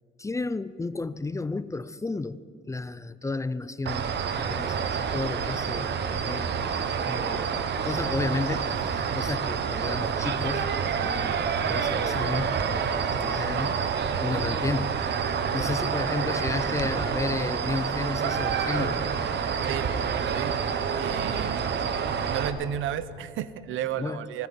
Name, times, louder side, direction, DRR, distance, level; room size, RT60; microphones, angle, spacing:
voice 1, 0.2-2.4 2.7-6.5 7.1-15.0 15.5-19.0 21.3-21.4 24.0-24.2, left 3 dB, 15° left, 16 dB, 0.4 m, -32 dB
sound 1, 3.9-22.5, right 6 dB, 60° right, 1.1 m, -28 dB
voice 2, 20.2-20.6 21.0-21.6 22.3-24.5, right 10 dB, 80° right, 15 dB, 0.7 m, -33 dB
24.5 x 10.5 x 5.4 m, 2.6 s
cardioid pair, 90°, 20 cm